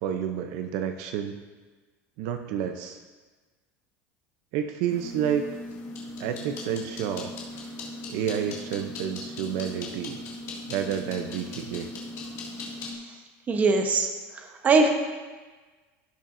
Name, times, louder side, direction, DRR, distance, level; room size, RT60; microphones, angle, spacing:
voice 1, 0.0-1.4 2.2-3.0 4.5-5.5 6.2-7.3 8.1-10.2 10.7-11.9, right 9 dB, 65° right, 7 dB, 0.6 m, -30 dB
sound 1, 4.9-12.9, left 2 dB, 45° left, 2.2 m, -38 dB
voice 2, 13.5-14.1 14.3-14.9, right 4 dB, 25° right, 4 dB, 1.0 m, -21 dB
16.5 x 6.7 x 2.6 m, 1.3 s
cardioid pair, 155°, 6 cm